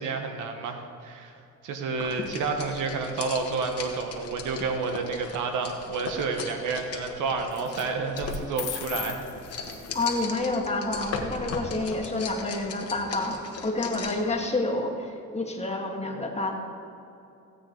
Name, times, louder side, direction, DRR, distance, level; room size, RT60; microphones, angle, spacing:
voice 1, 0.0-1.4 1.6-9.2, right 4 dB, 85° right, 5 dB, 1.3 m, -30 dB
sound 1, 2.0-14.3, left 4 dB, 50° left, 1.4 m, -38 dB
sound 2, 4.6-5.2 7.5-7.8 8.2-10.2, left 12 dB, 85° left, 1.2 m, -39 dB
voice 2, 9.9-16.6, left 2 dB, 20° left, 1 dB, 1.8 m, -29 dB
15.5 x 8.6 x 3.9 m, 2.8 s
cardioid pair, 90°, 30 cm